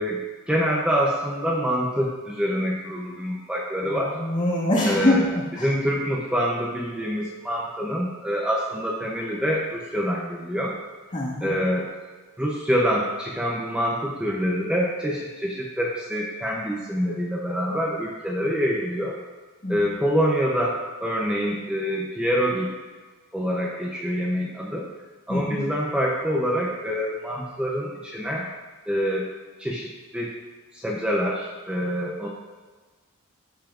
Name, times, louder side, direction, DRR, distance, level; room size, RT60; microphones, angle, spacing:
voice 1, 0.0-4.2 4.9-5.2 5.6-10.8 11.4-11.9 12.4-19.2 19.7-22.7 23.3-24.9 25.3-28.5 28.9-29.3 29.6-30.3 30.7-32.3, equal, 5° right, -4 dB, 0.7 m, -26 dB
voice 2, 3.8-5.7 11.1-11.6 19.6-19.8 25.3-25.6, left 1 dB, 35° left, -5 dB, 1.7 m, -24 dB
13.5 x 5.6 x 2.5 m, 1.4 s
head